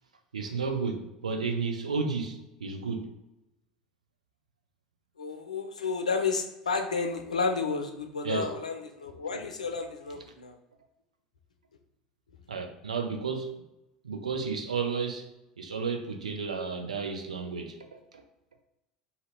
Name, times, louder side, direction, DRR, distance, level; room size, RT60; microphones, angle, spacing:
voice 1, 0.3-3.1 8.2-8.5 12.5-13.5 14.0-15.3 15.6-18.2, right 5 dB, 75° right, 5 dB, 0.5 m, -32 dB
voice 2, 5.2-10.5, left 4 dB, 75° left, 5 dB, 0.5 m, -31 dB
2.9 x 2.8 x 3.8 m, 0.93 s
figure-of-eight pair, 70°, 4 cm